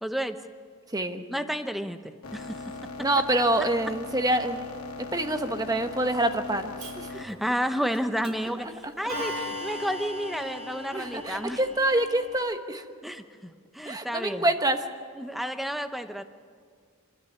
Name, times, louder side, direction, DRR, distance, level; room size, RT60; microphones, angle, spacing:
voice 1, 0.0-0.4 1.3-2.7 7.1-11.6 13.0-14.4 15.1-16.2, equal, ahead, 8 dB, 0.9 m, -31 dB
voice 2, 0.9-1.2 3.0-4.7 5.0-7.2 8.6-9.2 10.9-12.8 13.8-14.8, right 1 dB, 15° right, 7 dB, 1.2 m, -27 dB
sound 1, 2.2-7.2, left 3 dB, 80° left, 2.6 m, -39 dB
Clock, 6.8-6.9 7.9-8.5 9.1-12.4, left 1 dB, 75° right, 3.8 m, -37 dB
27.0 x 13.0 x 9.5 m, 2.1 s
head